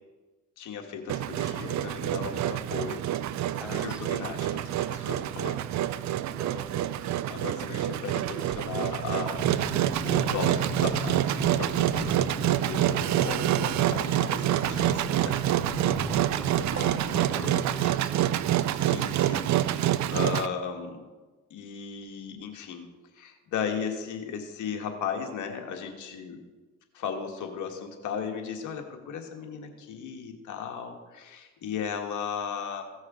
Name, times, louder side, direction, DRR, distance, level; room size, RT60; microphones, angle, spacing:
voice 1, 0.6-3.0 3.5-5.6 7.2-15.4 17.1-17.6 18.7-21.0 21.5-22.9 23.1-26.4 26.9-32.9, left 7 dB, 80° left, 4 dB, 1.7 m, -36 dB
Engine, 1.1-20.5, right 12 dB, 65° right, 0.5 m, -27 dB
voice 2, 3.6-4.2 6.1-7.3 16.1-16.6 17.2-18.3, right 1 dB, 5° right, 7 dB, 1.2 m, -45 dB
sound 1, 9.3-18.0, left 4 dB, 15° left, 0.5 m, -39 dB
sound 2, 16.3-18.4, right 2 dB, 45° right, 4.2 m, -51 dB
16.0 x 6.5 x 5.0 m, 1.3 s
cardioid pair, 90°, 30 cm